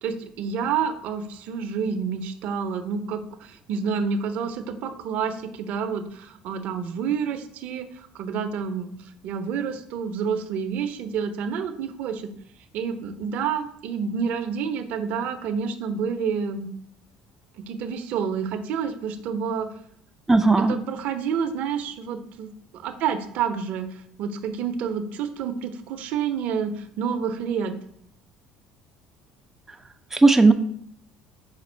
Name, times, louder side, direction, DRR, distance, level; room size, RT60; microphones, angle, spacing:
voice 1, 0.0-12.3 12.7-16.7 17.6-19.7 20.7-23.9 24.2-27.7, right 6 dB, 65° right, 9 dB, 0.5 m, -29 dB
voice 2, 20.3-20.8 30.1-30.5, right 3 dB, 10° right, 6 dB, 0.3 m, -16 dB
5.1 x 2.4 x 4.4 m, 0.67 s
supercardioid pair, 90°, 3 cm